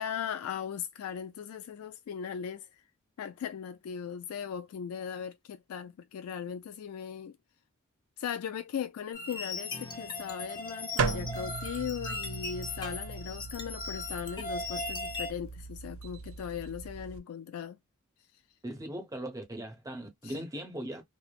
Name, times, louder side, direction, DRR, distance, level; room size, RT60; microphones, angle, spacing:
voice 1, 0.0-2.7 3.2-7.4 8.2-17.8 20.2-20.4, left 8 dB, 75° left, 0.3 m, -38 dB
sound 1, 9.1-15.3, left 2 dB, 20° left, 0.8 m, -38 dB
sound 2, 11.0-17.2, right 4 dB, 65° right, 0.5 m, -37 dB
voice 2, 18.6-21.0, right 1 dB, 15° right, 0.8 m, -39 dB
3.1 x 2.0 x 2.3 m
head